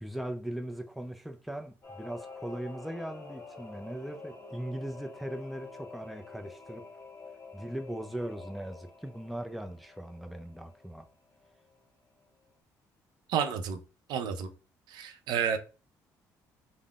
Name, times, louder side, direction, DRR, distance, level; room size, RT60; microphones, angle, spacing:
voice 1, 0.0-6.8 7.5-11.1, right 1 dB, ahead, 0.4 m, -39 dB
Singing / Musical instrument, 1.8-11.9 12.2-12.3, left 4 dB, 35° left, 0.8 m, -48 dB
voice 2, 13.3-13.8 14.1-14.5 14.9-15.6, right 7 dB, 75° right, 0.4 m, -30 dB
3.6 x 2.0 x 2.3 m
supercardioid pair, 85°, 8 cm